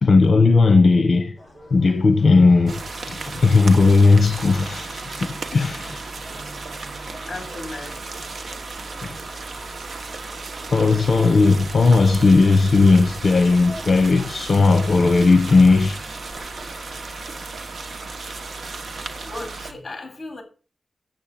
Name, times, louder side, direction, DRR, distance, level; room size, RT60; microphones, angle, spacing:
voice 1, 0.0-1.4 1.7-2.8 3.1-6.2 10.7-16.0, left 3 dB, 55° left, 1.1 m, -16 dB
sound 1, 1.3-19.8, equal, 5° right, 7.4 m, -46 dB
sound 2, 2.7-19.7, right 3 dB, 60° right, 1.2 m, -35 dB
voice 2, 7.2-8.0 19.2-20.4, left 2 dB, 30° left, 4.1 m, -35 dB
8.0 x 7.7 x 8.7 m
wide cardioid pair, 165°, 0 cm